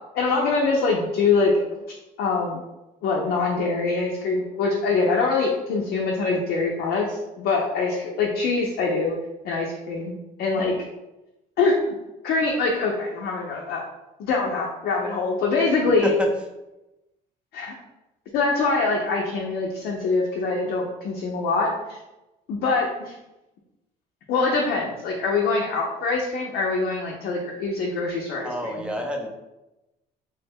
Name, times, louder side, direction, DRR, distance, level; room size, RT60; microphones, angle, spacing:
voice 1, 0.1-1.6 2.2-2.6 3.0-9.2 9.4-10.7 11.6-11.9 12.2-13.8 14.2-16.1 17.5-17.7 18.3-22.0 22.5-23.2 24.3-28.5, left 3 dB, 70° left, -1 dB, 0.6 m, -24 dB
voice 2, 28.4-29.3, left 1 dB, 5° right, 1 dB, 0.5 m, -28 dB
3.1 x 2.1 x 3.4 m, 0.97 s
cardioid pair, 110°, 17 cm